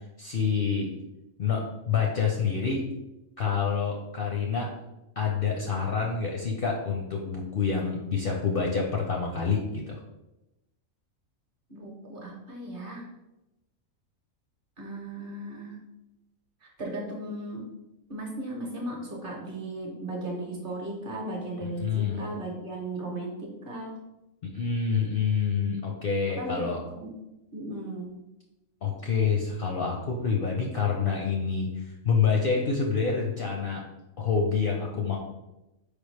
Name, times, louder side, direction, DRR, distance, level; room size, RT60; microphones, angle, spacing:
voice 1, 0.2-0.9 1.4-2.8 3.4-4.7 5.2-10.0 21.6-22.2 24.4-26.8 28.8-33.8 34.2-35.2, left 6 dB, 60° left, -1 dB, 0.6 m, -27 dB
voice 2, 11.7-13.1 14.8-15.8 16.6-17.6 18.1-24.0 25.0-25.1 26.3-27.1 27.5-28.1, right 1 dB, 45° right, -1 dB, 1.0 m, -36 dB
4.7 x 3.4 x 3.2 m, 0.97 s
omnidirectional pair, 1.4 m